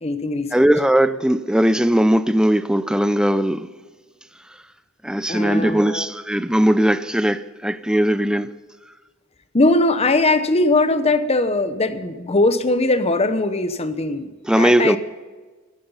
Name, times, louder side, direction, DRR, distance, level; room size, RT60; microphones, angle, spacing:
voice 1, 0.0-0.7 5.3-6.1 9.5-15.0, left 2 dB, 30° left, 0.9 m, -20 dB
voice 2, 0.5-3.7 5.0-8.5 14.5-15.0, equal, 5° right, 0.5 m, -18 dB
14.0 x 13.0 x 5.6 m
head